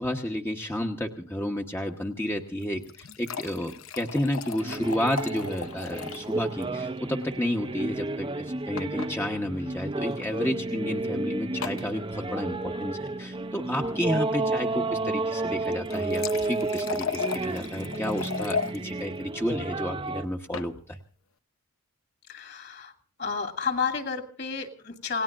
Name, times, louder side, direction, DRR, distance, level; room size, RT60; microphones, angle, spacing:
voice 1, 0.0-21.0, left 1 dB, 10° left, 2 dB, 1.0 m, -31 dB
sound 1, 2.6-6.3 6.6-6.7 7.0-7.1 8.8-9.1 10.1-10.3 11.6-11.9 15.6-18.8 20.2-20.7, left 5 dB, 65° left, 0.8 m, -35 dB
sound 2, 4.6-20.2, right 2 dB, 20° right, 0.6 m, -32 dB
voice 2, 22.3-22.9 23.2-25.2, left 5 dB, 50° left, 5 dB, 2.7 m, -31 dB
28.5 x 18.5 x 2.5 m, 0.44 s
head